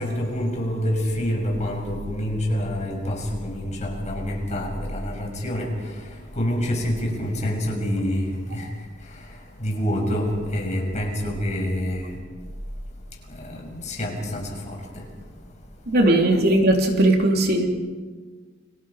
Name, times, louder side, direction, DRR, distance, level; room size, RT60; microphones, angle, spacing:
voice 1, 0.0-8.7 9.0-12.2 13.3-15.0, equal, 35° left, 0 dB, 6.3 m, -27 dB
voice 2, 15.9-17.7, right 1 dB, 55° right, 2 dB, 3.0 m, -18 dB
30.0 x 24.0 x 4.9 m, 1.5 s
head